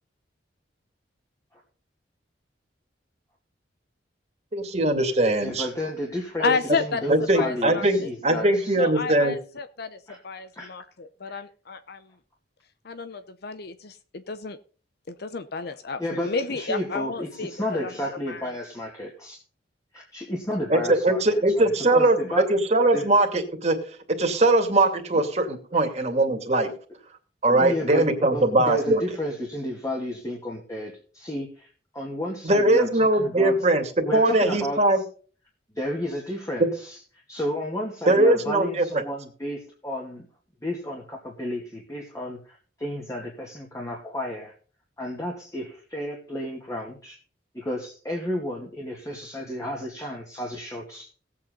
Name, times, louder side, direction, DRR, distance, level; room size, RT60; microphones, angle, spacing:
voice 1, 4.5-5.6 6.4-6.6 7.1-9.4 20.7-22.2 22.5-23.8 24.1-26.7 27.4-29.0 32.4-35.0 36.6-36.7 38.1-38.8, right 2 dB, 35° right, 4 dB, 2.6 m, -21 dB
voice 2, 5.4-8.7 10.1-10.2 10.5-10.7 11.3-11.4 15.6-19.4 19.9-22.5 22.9-23.1 25.7-25.9 27.5-33.6 34.0-35.0 35.7-37.0 37.3-40.3 40.6-44.5 45.0-47.2 47.5-51.1, left 1 dB, 20° left, -1 dB, 2.4 m, -32 dB
voice 3, 6.4-7.0 7.3-8.1 8.8-10.0 10.2-12.0 12.8-14.6 15.1-17.5 17.8-18.5, left 4 dB, 60° left, 12 dB, 0.7 m, -31 dB
18.0 x 8.6 x 4.0 m, 0.40 s
head